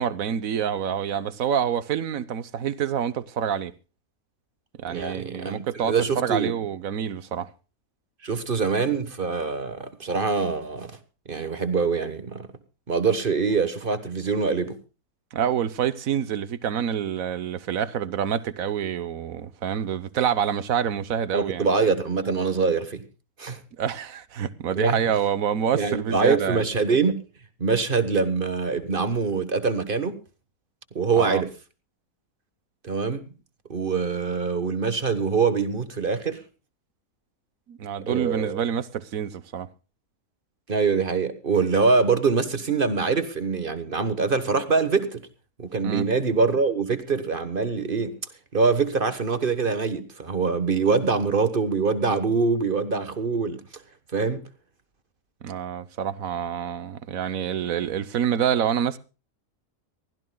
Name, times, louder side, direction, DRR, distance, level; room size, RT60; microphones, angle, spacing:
voice 1, 0.0-3.7 4.8-7.5 15.3-21.7 23.8-26.6 31.1-31.5 37.7-39.7 45.8-46.1 55.4-59.0, right 8 dB, 65° right, 1.3 m, -27 dB
voice 2, 4.9-6.5 8.2-11.0 11.3-12.5 12.9-14.8 21.3-23.0 23.4-23.6 24.7-25.0 25.7-27.2 27.6-30.2 30.9-31.5 32.8-33.3 33.7-36.4 38.1-38.6 40.7-45.3 45.6-48.2 48.5-53.8 54.1-54.4, right 4 dB, 35° right, 1.4 m, -24 dB
23.5 x 15.5 x 2.3 m
omnidirectional pair, 1.6 m